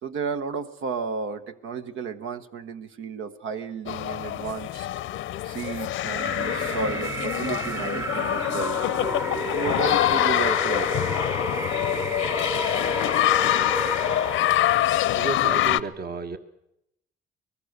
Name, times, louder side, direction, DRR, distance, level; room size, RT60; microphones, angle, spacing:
voice 1, 0.0-4.9 5.4-8.8 9.3-11.1, right 6 dB, 80° right, 9 dB, 1.3 m, -33 dB
Ambiente da quadra esportiva no Colégio São Bento, 3.9-15.8, left 14 dB, 80° left, 0.7 m, -25 dB
sound 1, 6.1-15.1, right 1 dB, 15° right, 0.8 m, -31 dB
voice 2, 15.1-16.4, right 4 dB, 50° right, 8 dB, 1.6 m, -32 dB
24.5 x 20.0 x 6.7 m, 0.80 s
cardioid pair, 90°, 20 cm